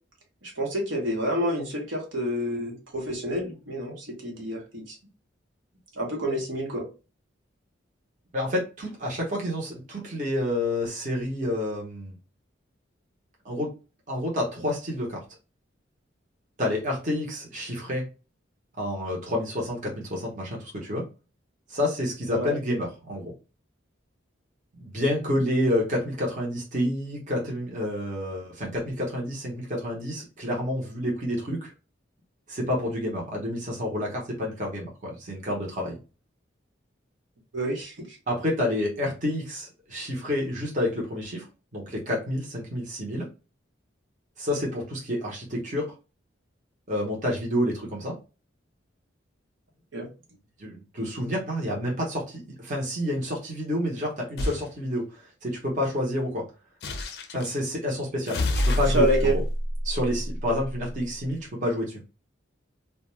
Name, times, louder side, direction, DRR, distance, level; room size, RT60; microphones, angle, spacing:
voice 1, 0.4-4.9 6.0-6.9 22.3-22.5 37.5-38.1 49.9-50.1 58.9-59.4, equal, 85° right, -1 dB, 1.0 m, -28 dB
voice 2, 8.3-12.1 13.4-13.7 14.1-15.2 16.6-18.1 18.8-21.0 21.7-23.3 24.7-31.7 32.5-36.0 38.3-41.4 41.7-43.3 44.4-45.9 46.9-48.1 50.6-56.4 57.3-59.4 59.8-62.0, left 1 dB, 40° right, -2 dB, 0.8 m, -29 dB
sound 1, 54.4-54.7 56.8-57.5 58.3-60.9, left 1 dB, 55° left, 0.4 m, -27 dB
2.4 x 2.2 x 3.0 m, 0.32 s
head